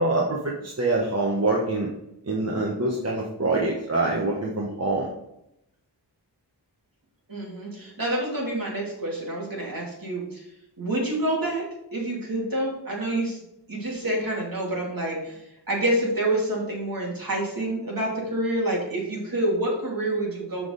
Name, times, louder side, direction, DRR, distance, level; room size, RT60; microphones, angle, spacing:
voice 1, 0.0-1.9 2.2-5.1, right 2 dB, 35° right, -2 dB, 1.2 m, -25 dB
voice 2, 7.3-10.4 10.8-11.6 11.9-13.4 13.7-20.7, right 1 dB, 55° right, -3 dB, 2.9 m, -27 dB
7.0 x 5.9 x 4.0 m, 0.82 s
wide cardioid pair, 95°, 42 cm